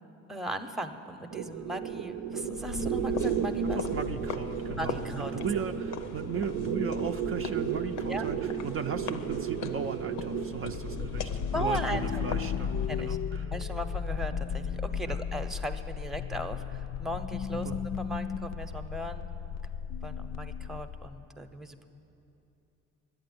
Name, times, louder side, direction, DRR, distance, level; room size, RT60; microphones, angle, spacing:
voice 1, 0.3-3.8 4.7-5.3 8.0-8.2 11.5-12.2 12.9-13.2 13.5-19.3 20.0-21.9, right 1 dB, ahead, 6 dB, 0.7 m, -37 dB
sound 1, 1.3-11.2, right 7 dB, 90° right, 0.6 m, -34 dB
sound 2, 2.4-13.3, left 5 dB, 85° left, 0.8 m, -40 dB
voice 2, 3.6-13.5 15.1-15.2 17.6-17.8, right 6 dB, 45° right, 5 dB, 0.5 m, -36 dB
sound 3, 10.6-21.2, left 7 dB, 60° left, 0.4 m, -35 dB
11.5 x 8.7 x 9.3 m, 2.8 s
cardioid pair, 90°, 30 cm